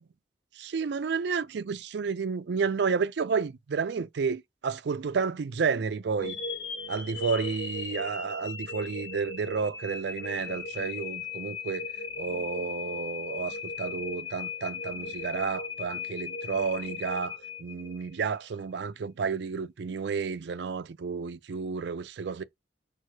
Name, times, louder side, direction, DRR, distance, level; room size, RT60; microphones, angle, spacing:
voice 1, 0.6-6.4 6.9-11.9 12.2-22.4, right 5 dB, 60° right, 0.4 m, -31 dB
sound 1, 6.2-18.3, left 4 dB, 75° left, 1.1 m, -37 dB
4.7 x 2.3 x 4.5 m
head